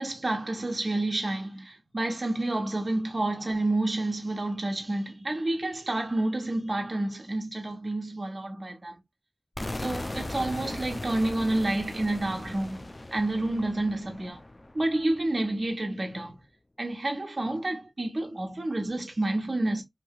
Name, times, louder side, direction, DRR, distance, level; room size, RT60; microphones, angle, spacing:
voice 1, 0.0-9.0 9.8-14.4 14.7-16.4 16.8-19.8, right 2 dB, 45° right, 0.9 m, -29 dB
sound 1, 9.6-15.4, left 1 dB, 35° left, 0.4 m, -38 dB
3.1 x 2.8 x 2.3 m
wide cardioid pair, 50°, 0 cm